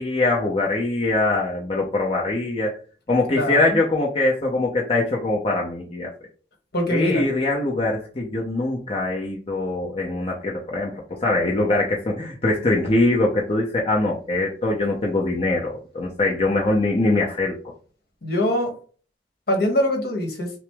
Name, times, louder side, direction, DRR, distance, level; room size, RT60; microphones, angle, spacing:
voice 1, 0.0-2.7 3.1-6.1 6.9-17.7, left 2 dB, 35° left, -2 dB, 0.7 m, -22 dB
voice 2, 3.3-3.8 6.7-7.2 18.2-18.8 19.5-20.5, left 1 dB, 60° left, 2 dB, 1.3 m, -23 dB
6.0 x 2.0 x 3.4 m, 0.39 s
head